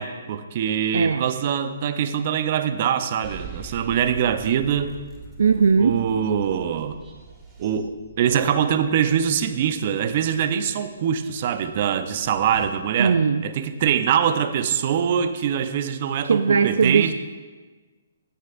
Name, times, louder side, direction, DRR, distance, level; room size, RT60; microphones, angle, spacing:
voice 1, 0.0-4.9 5.8-7.0 7.6-13.2 13.4-17.1, right 8 dB, 45° right, 10 dB, 0.7 m, -23 dB
voice 2, 0.9-1.2 5.4-5.9 13.0-13.4 16.2-17.1, right 5 dB, 75° right, 10 dB, 0.4 m, -19 dB
sound 1, 3.2-12.7, right 4 dB, 15° right, 2.0 m, -44 dB
15.0 x 9.5 x 2.5 m, 1.3 s
hypercardioid pair, 140°, 0 cm